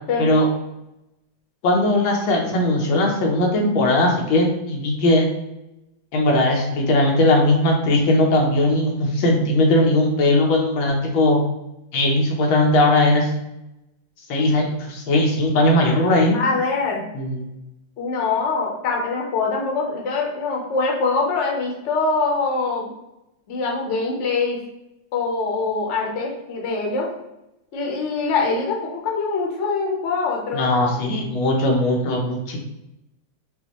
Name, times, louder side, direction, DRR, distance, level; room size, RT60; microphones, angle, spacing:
voice 1, 1.6-5.3 6.1-11.4 11.9-13.3 14.3-16.4 17.1-17.5 30.5-32.6, left 1 dB, 90° left, 0 dB, 1.7 m, -19 dB
voice 2, 16.3-17.1 18.0-22.9 23.5-24.6 25.1-27.1 27.7-30.7, left 4 dB, 50° left, -1 dB, 0.9 m, -23 dB
5.3 x 2.3 x 3.0 m, 0.90 s
omnidirectional pair, 2.1 m